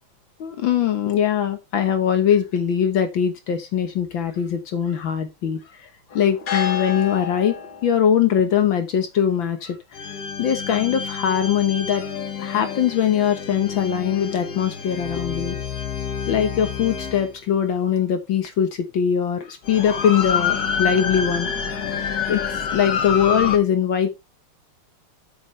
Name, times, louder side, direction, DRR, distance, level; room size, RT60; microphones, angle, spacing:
voice 1, 0.4-7.5 7.8-9.8 10.4-12.1 12.4-15.6 16.3-21.5 22.3-24.1, left 8 dB, 65° left, 1.9 m, -21 dB
sound 1, 6.1-7.9 9.9-17.3 18.4-18.5 19.6-23.6, left 6 dB, 50° left, 1.7 m, -28 dB
8.7 x 6.8 x 3.2 m
omnidirectional pair, 2.4 m